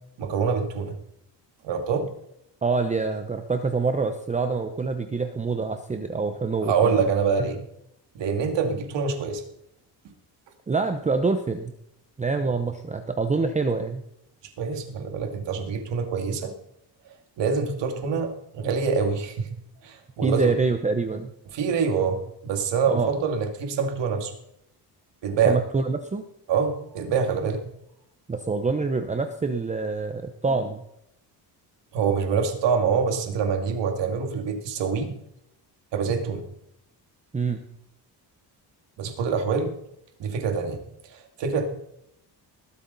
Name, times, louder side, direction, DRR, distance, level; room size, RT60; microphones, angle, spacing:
voice 1, 0.2-0.9 1.6-2.1 6.7-7.6 8.1-9.4 12.4-12.6 14.6-16.5 17.4-19.5 19.8-20.5 21.5-24.3 25.2-25.6 26.5-27.6 31.9-35.1 35.9-36.4 39.0-39.7 40.2-40.8 41.1-41.7, right 5 dB, 85° right, 5 dB, 2.4 m, -25 dB
voice 2, 2.6-7.0 10.7-11.7 12.2-14.0 20.2-21.3 22.9-23.1 25.4-26.2 28.3-30.8 37.3-37.6, right 4 dB, 15° right, 7 dB, 0.7 m, -26 dB
20.0 x 8.5 x 4.0 m, 0.76 s
cardioid pair, 145°, 42 cm